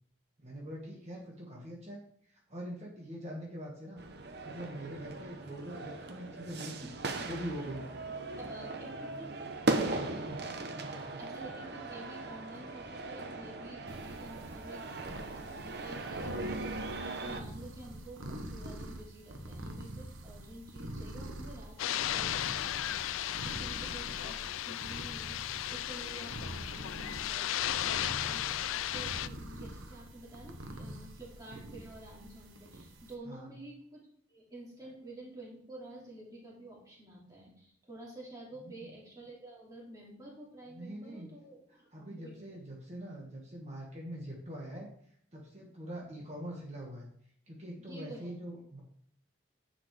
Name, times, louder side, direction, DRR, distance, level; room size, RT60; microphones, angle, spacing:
voice 1, 0.4-4.0 4.4-6.9 7.3-7.8 9.7-10.4 10.7-11.2 33.3-33.5 38.6-38.9 40.7-41.3 41.9-44.9 45.3-47.1 47.5-48.8, equal, 35° right, -3 dB, 1.7 m, -43 dB
sound 1, 4.0-17.4, right 2 dB, 55° right, 0.9 m, -38 dB
voice 2, 8.3-9.3 9.8-10.0 11.2-34.0 34.3-42.6 47.8-48.3, right 1 dB, 15° right, -4 dB, 2.8 m, -50 dB
sound 2, 13.9-33.1, right 1 dB, 85° right, 1.3 m, -45 dB
sound 3, 21.8-29.3, left 12 dB, 85° left, 0.3 m, -35 dB
10.0 x 7.1 x 3.4 m, 0.64 s
head